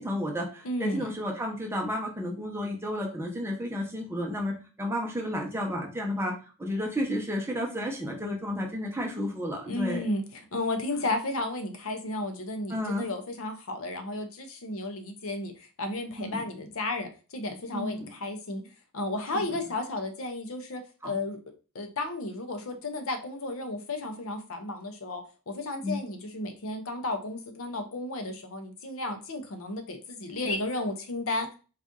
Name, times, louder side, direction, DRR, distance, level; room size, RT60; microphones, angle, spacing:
voice 1, 0.0-6.3 6.6-10.0 10.9-11.0 12.7-13.1 16.2-16.4 17.7-18.1 19.3-19.4 21.0-21.1 25.8-26.0, left 1 dB, 10° right, 0 dB, 0.8 m, -32 dB
voice 2, 0.6-1.1 9.7-18.6 18.9-21.4 21.7-31.5, left 2 dB, 65° left, 7 dB, 0.7 m, -33 dB
4.1 x 2.6 x 3.6 m, 0.34 s
head